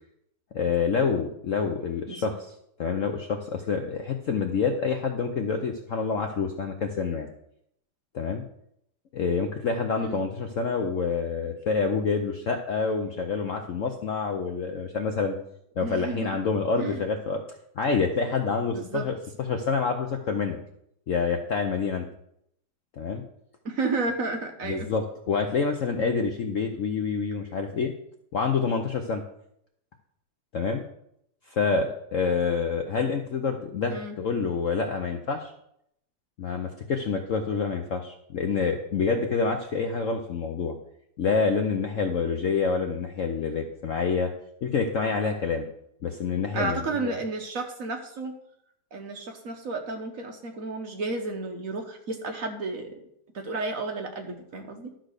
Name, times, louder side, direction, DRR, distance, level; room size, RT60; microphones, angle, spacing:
voice 1, 0.5-2.4 2.8-7.3 8.1-8.4 9.1-15.4 15.8-17.4 17.8-19.2 19.5-20.6 21.1-22.1 23.0-23.2 24.6-27.9 28.3-29.2 30.5-30.8 31.5-35.5 36.4-40.7 41.2-44.3 44.6-45.7 46.0-47.2, left 5 dB, 60° left, 4 dB, 0.8 m, -27 dB
voice 2, 15.8-16.3 16.8-17.0 18.7-19.1 23.6-24.9 33.9-34.1 46.5-48.3 48.9-53.0 53.3-54.9, right 3 dB, 50° right, 4 dB, 1.2 m, -32 dB
12.0 x 4.0 x 6.5 m, 0.74 s
omnidirectional pair, 2.1 m